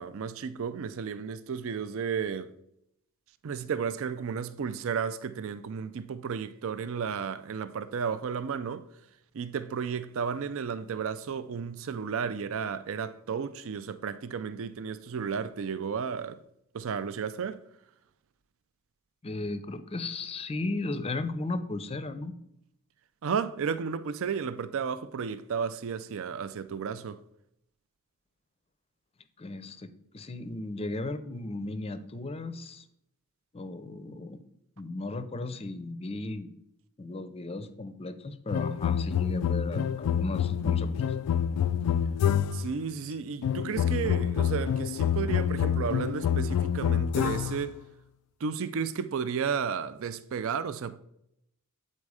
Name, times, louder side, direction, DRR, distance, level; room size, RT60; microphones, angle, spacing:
voice 1, 0.0-2.5 3.4-8.9 9.3-16.4 16.7-17.6 23.2-27.2 42.5-47.8 48.4-51.0, right 6 dB, 60° right, 0.4 m, -33 dB
voice 2, 19.2-22.3 29.4-32.8 33.5-34.4 34.8-36.5 37.0-41.1, left 2 dB, 25° left, 0.5 m, -35 dB
sound 1, 38.5-42.8 43.4-47.7, left 8 dB, 85° left, 0.3 m, -27 dB
8.4 x 4.3 x 4.8 m
head